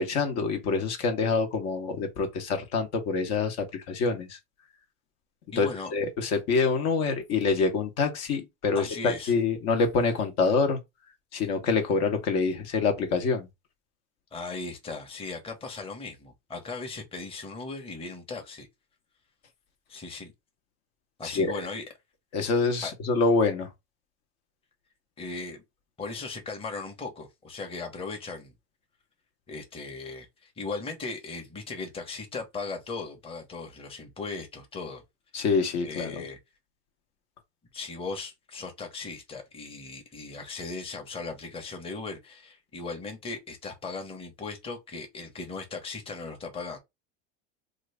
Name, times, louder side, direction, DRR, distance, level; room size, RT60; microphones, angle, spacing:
voice 1, 0.0-4.4 5.6-10.8 11.3-13.5 21.2-21.6 22.3-23.7 35.3-36.2, left 4 dB, 55° left, 1.2 m, -26 dB
voice 2, 5.5-5.9 8.7-9.3 14.3-18.7 19.9-20.3 21.2-21.8 22.8-22.9 25.2-25.6 26.0-28.5 29.5-35.0 35.4-35.5 35.8-36.4 37.7-46.8, left 4 dB, 20° left, 1.1 m, -38 dB
3.1 x 2.5 x 3.2 m
supercardioid pair, 130°, 30 cm